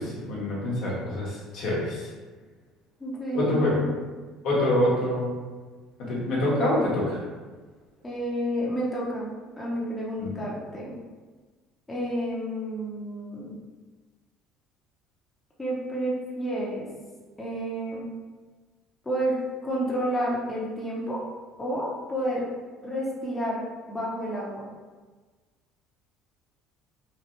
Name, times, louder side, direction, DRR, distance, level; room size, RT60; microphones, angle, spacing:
voice 1, 0.0-2.1 3.3-3.8 4.4-5.3 6.0-7.2 10.2-10.3, left 1 dB, 70° left, -6 dB, 1.1 m, -26 dB
voice 2, 3.0-3.9 8.0-9.3 9.6-11.0 11.9-13.5 15.6-16.9 17.4-18.0 19.0-19.3 19.6-21.2 21.6-22.4 22.8-23.6 23.9-24.7, right 1 dB, 20° left, -5 dB, 0.9 m, -30 dB
3.3 x 2.3 x 3.1 m, 1.4 s
supercardioid pair, 75°, 0 cm